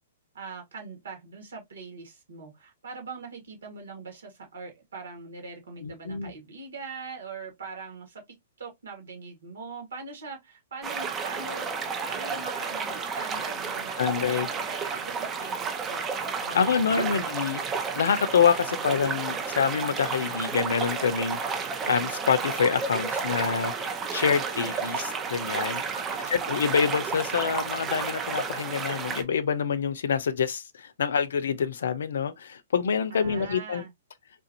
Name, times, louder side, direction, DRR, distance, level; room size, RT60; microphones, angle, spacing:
voice 1, 0.3-11.7 12.0-16.1 16.4-17.3 24.3-24.7 25.9-26.5 33.1-33.9, right 4 dB, 75° right, 2.1 m, -42 dB
voice 2, 5.8-6.3 14.0-14.5 16.5-25.0 25.3-25.8 26.3-33.8, left 6 dB, 70° left, 0.6 m, -26 dB
sound 1, 10.8-29.2, right 5 dB, 20° right, 0.7 m, -32 dB
3.7 x 2.6 x 2.7 m
hypercardioid pair, 125°, 0 cm